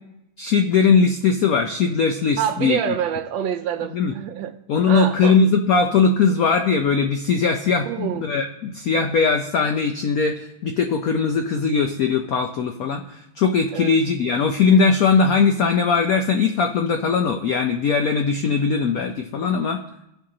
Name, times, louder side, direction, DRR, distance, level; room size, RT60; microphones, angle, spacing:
voice 1, 0.4-2.9 3.9-4.1 4.7-19.8, left 5 dB, 85° left, 5 dB, 0.7 m, -20 dB
voice 2, 2.4-4.6 4.9-5.4 7.9-8.3 13.7-14.0, right 9 dB, 75° right, 9 dB, 1.3 m, -26 dB
15.5 x 5.5 x 3.7 m, 0.86 s
omnidirectional pair, 2.2 m